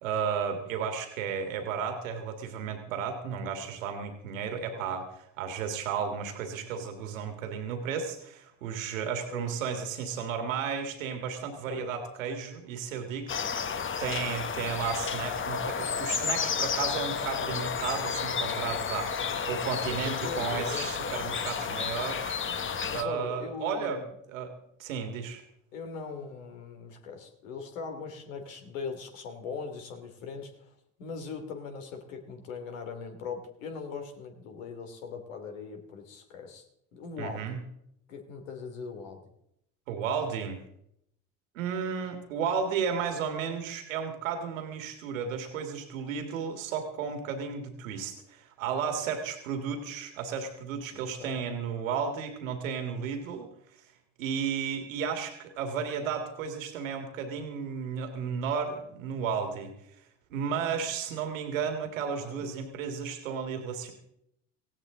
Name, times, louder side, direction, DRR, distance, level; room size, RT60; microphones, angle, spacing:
voice 1, 0.0-5.0 5.4-13.3 14.0-19.1 19.4-22.4 22.9-24.0 24.3-24.5 24.8-25.4 37.2-37.6 39.9-40.6 41.6-53.5 54.2-59.7 60.3-63.9, right 6 dB, 80° right, 6 dB, 2.2 m, -33 dB
voice 2, 4.4-4.9 9.3-9.5 11.6-11.9 14.3-14.4 18.9-19.4 20.0-20.9 22.8-24.1 25.7-36.6 36.9-37.6 38.1-39.3 50.9-51.4 62.2-62.4, left 5 dB, 75° left, 5 dB, 3.0 m, -40 dB
sound 1, 13.3-23.0, left 6 dB, 30° left, 1.3 m, -32 dB
18.0 x 16.0 x 3.9 m, 0.75 s
hypercardioid pair, 70°, 39 cm